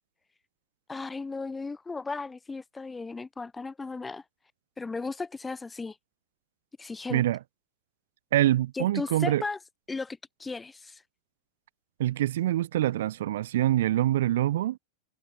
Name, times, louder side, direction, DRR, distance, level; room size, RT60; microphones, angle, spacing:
voice 1, 0.9-4.2 4.8-6.0 6.8-7.2 8.7-9.6 9.9-11.0, left 3 dB, 10° left, 0.6 m, -35 dB
voice 2, 8.3-9.4 12.0-14.8, right 13 dB, 60° right, 0.5 m, -25 dB
figure-of-eight pair, 90°, 0 cm